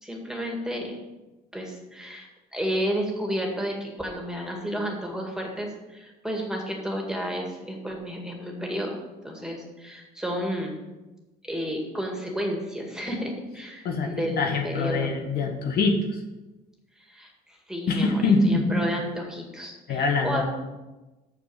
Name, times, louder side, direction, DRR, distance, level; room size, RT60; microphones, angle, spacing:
voice 1, 0.0-0.9 1.5-8.9 9.2-10.8 11.5-15.1 17.0-20.4, equal, 5° right, 0 dB, 2.2 m, -32 dB
voice 2, 13.8-16.0 17.9-18.8 19.9-20.4, left 3 dB, 70° left, 3 dB, 1.4 m, -24 dB
6.7 x 6.5 x 7.1 m, 1.1 s
cardioid pair, 110°, 17 cm